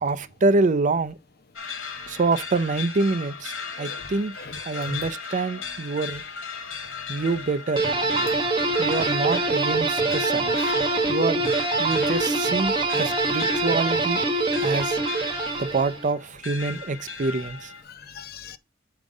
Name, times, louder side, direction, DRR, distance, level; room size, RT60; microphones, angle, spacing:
voice 1, 0.0-1.2 2.1-3.5 3.8-4.3 4.7-6.2 7.1-7.8 8.8-10.6 11.1-11.4 11.8-14.2 14.6-15.0 15.6-17.7, right 3 dB, 40° right, 0.5 m, -26 dB
sound 1, 1.5-17.8, left 5 dB, 85° left, 2.0 m, -37 dB
voice 2, 3.8-4.1 4.4-5.0 11.9-12.0 12.8-12.9 15.3-15.5 17.9-18.6, left 3 dB, 50° left, 0.7 m, -41 dB
sound 2, 7.8-16.1, right 2 dB, 25° right, 1.1 m, -24 dB
Mallet percussion, 10.5-12.3, left 5 dB, 65° left, 1.0 m, -40 dB
5.4 x 4.9 x 5.0 m
head